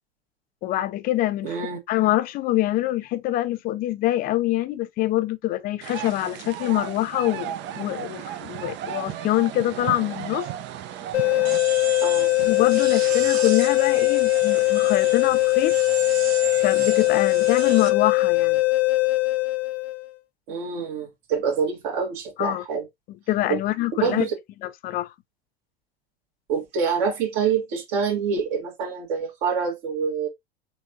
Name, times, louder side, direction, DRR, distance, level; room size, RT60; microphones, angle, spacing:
voice 1, 0.6-1.6 1.9-10.5 12.4-15.7 16.6-18.6 22.4-22.6 23.3-24.3 24.6-25.1, left 15 dB, 30° left, 0.4 m, -25 dB
voice 2, 1.4-1.8 12.0-12.3 20.5-22.8 24.0-24.3 26.5-30.3, right 6 dB, 55° right, 1.6 m, -26 dB
sound 1, 5.8-11.6, right 11 dB, 35° right, 0.5 m, -34 dB
sound 2, 11.1-20.1, left 19 dB, 75° left, 0.6 m, -21 dB
sound 3, 11.4-17.9, right 8 dB, 75° right, 0.8 m, -35 dB
3.9 x 3.5 x 2.6 m
figure-of-eight pair, 80°, 32 cm